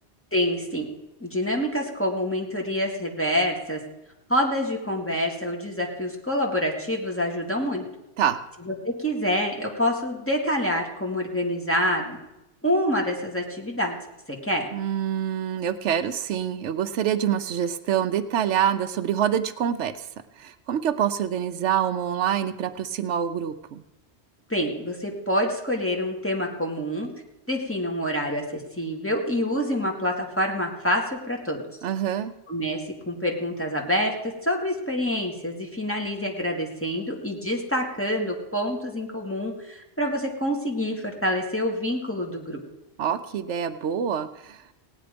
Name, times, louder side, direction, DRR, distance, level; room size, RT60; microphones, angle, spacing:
voice 1, 0.3-0.9 1.2-3.8 4.3-7.9 8.7-12.2 12.6-14.0 14.3-14.7 24.5-27.1 27.5-31.6 32.5-42.6, equal, 10° left, 0 dB, 1.9 m, -27 dB
voice 2, 14.7-20.1 20.4-23.8 31.8-32.3 43.0-44.6, right 9 dB, 90° right, 11 dB, 1.0 m, -26 dB
17.0 x 9.5 x 5.1 m, 0.96 s
omnidirectional pair, 1.2 m